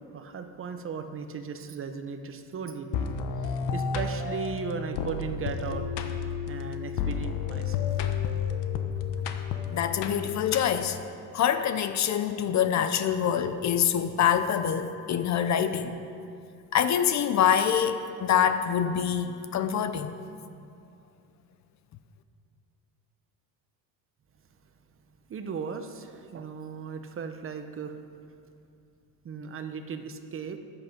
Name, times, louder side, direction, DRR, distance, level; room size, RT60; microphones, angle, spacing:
voice 1, 0.1-3.1 3.4-6.1 6.5-7.9 25.3-28.0 29.2-30.6, right 6 dB, 30° right, 7 dB, 0.8 m, -37 dB
sound 1, 2.9-11.0, left 6 dB, 70° left, 1.1 m, -31 dB
voice 2, 9.7-11.0 11.3-15.9 16.7-20.1, left 8 dB, 40° left, 10 dB, 0.7 m, -25 dB
14.0 x 9.9 x 5.3 m, 2.5 s
cardioid pair, 130°, 42 cm